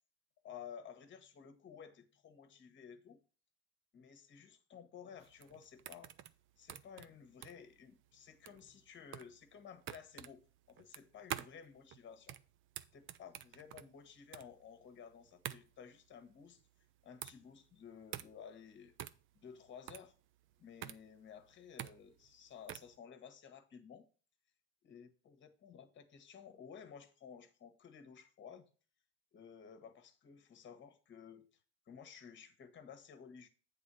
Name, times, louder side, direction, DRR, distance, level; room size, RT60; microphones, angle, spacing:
voice 1, 0.4-3.2 3.9-6.1 6.6-10.4 10.7-12.4 12.9-16.6 17.0-18.9 19.3-20.1 20.6-24.1 24.8-28.7 29.3-31.5 31.9-33.5, left 7 dB, 30° left, 1.3 m, -54 dB
sound 1, 5.2-23.0, right 11 dB, 35° right, 0.4 m, -49 dB
8.2 x 3.7 x 6.1 m
supercardioid pair, 125°, 35 cm